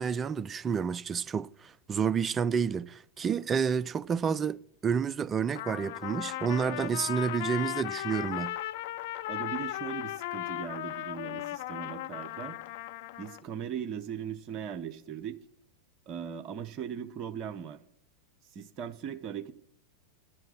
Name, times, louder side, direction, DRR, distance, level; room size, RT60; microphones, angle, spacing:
voice 1, 0.0-4.6 4.8-8.5, right 6 dB, 20° right, 0.3 m, -29 dB
Trumpet, 5.5-13.4, left 15 dB, 50° left, 0.4 m, -36 dB
voice 2, 9.2-12.6 13.2-15.4 16.1-17.8 18.5-19.5, right 8 dB, 35° right, 0.8 m, -39 dB
10.5 x 7.7 x 6.1 m
figure-of-eight pair, 90°, 0 cm